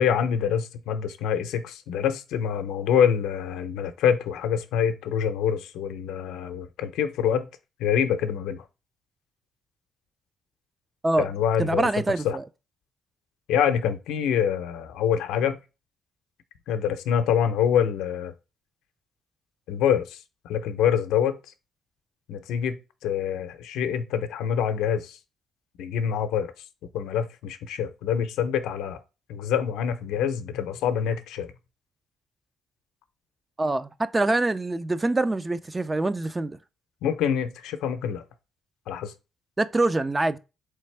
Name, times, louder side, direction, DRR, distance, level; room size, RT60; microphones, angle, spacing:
voice 1, 0.0-7.5 7.8-8.6 11.2-11.9 12.2-12.4 13.5-15.6 16.7-18.3 19.7-20.2 20.4-21.4 22.3-25.2 25.8-26.5 26.9-29.0 29.3-31.5 37.0-38.2 38.9-39.1, left 8 dB, 90° left, 0.6 m, -25 dB
voice 2, 11.6-12.4 33.6-36.6 39.6-40.4, right 2 dB, 20° right, 0.3 m, -25 dB
4.1 x 3.3 x 3.2 m
cardioid pair, 90°, 0 cm